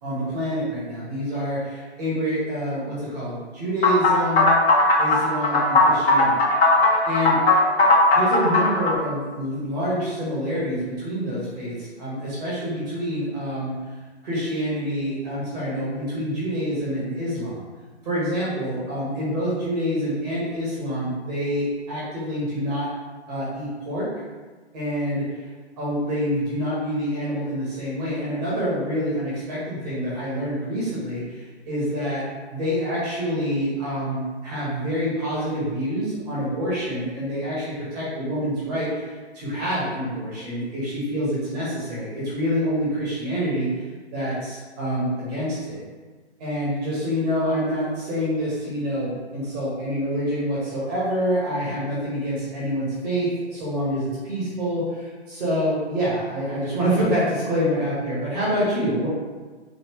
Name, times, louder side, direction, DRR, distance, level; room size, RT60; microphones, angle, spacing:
voice 1, 0.0-4.5 5.0-6.4 7.0-7.4 8.1-13.7 14.2-17.6 18.0-22.9 23.3-24.1 24.7-25.3 25.8-32.2 32.5-43.8 44.1-45.8 46.4-59.1, equal, 35° right, -8 dB, 1.3 m, -26 dB
sound 1, 3.8-9.0, left 2 dB, 60° left, 1.0 m, -18 dB
4.1 x 2.8 x 3.0 m, 1.4 s
figure-of-eight pair, 125°, 34 cm